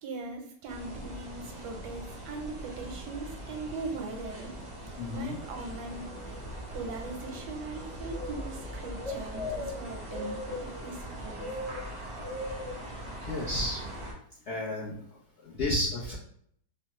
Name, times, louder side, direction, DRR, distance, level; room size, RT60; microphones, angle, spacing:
voice 1, 0.0-4.5 5.1-6.0 6.5-11.5, right 3 dB, 85° right, 3 dB, 1.2 m, -40 dB
sound 1, 0.7-14.1, equal, 30° right, 0.5 m, -40 dB
voice 2, 5.0-5.4 13.3-13.8 14.5-15.0 15.4-16.1, left 1 dB, 60° left, -7 dB, 0.7 m, -31 dB
3.2 x 2.1 x 2.9 m, 0.65 s
omnidirectional pair, 1.8 m